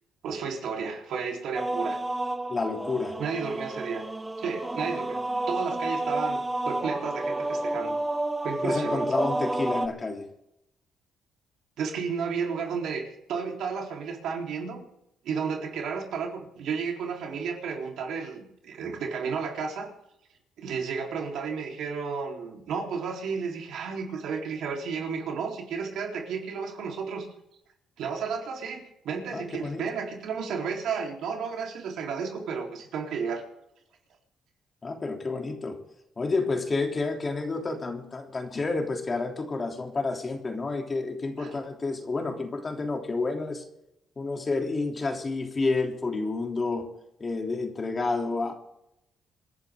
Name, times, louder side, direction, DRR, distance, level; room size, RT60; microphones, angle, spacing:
voice 1, 0.2-2.0 3.2-4.0 4.4-6.4 6.7-8.0 8.4-9.1 11.8-14.8 15.2-19.9 20.6-27.3 28.0-33.4 41.4-41.6, right 5 dB, 80° right, 1 dB, 4.0 m, -32 dB
sound 1, 1.5-9.9, right 2 dB, 15° right, 1.1 m, -30 dB
voice 2, 2.5-3.2 8.6-10.3 29.3-29.8 34.8-35.8 36.2-43.6 44.2-46.9 47.2-48.5, left 3 dB, 30° left, 2 dB, 3.3 m, -29 dB
27.5 x 11.0 x 3.8 m, 0.82 s
cardioid pair, 90°, 0 cm